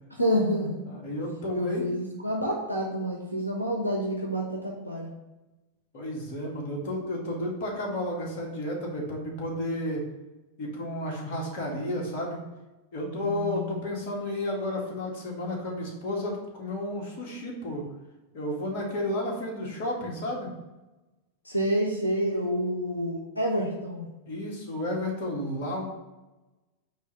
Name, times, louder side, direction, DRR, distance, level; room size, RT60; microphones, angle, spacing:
voice 1, 0.1-0.8 1.1-1.2 1.5-5.1 13.2-13.8 21.4-24.1, equal, 85° left, -1 dB, 1.0 m, -28 dB
voice 2, 0.9-1.8 5.9-10.0 10.6-12.4 12.9-17.8 18.3-20.5 24.3-25.9, left 1 dB, 45° left, -1 dB, 2.2 m, -32 dB
8.8 x 3.2 x 5.9 m, 1.1 s
figure-of-eight pair, 90°, 0 cm